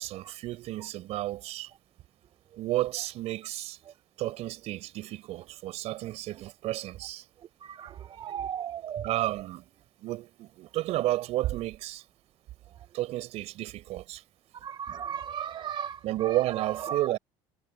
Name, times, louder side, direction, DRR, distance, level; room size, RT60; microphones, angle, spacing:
voice 1, 0.0-1.7 2.6-3.8 4.2-7.2 9.0-9.6 10.0-12.0 12.9-14.2 16.0-17.2, right 16 dB, 65° right, 4.0 m, -32 dB
voice 2, 8.2-9.1 14.6-16.0 16.9-17.0, right 8 dB, 40° right, 0.6 m, -35 dB
supercardioid pair, 105°, 12 cm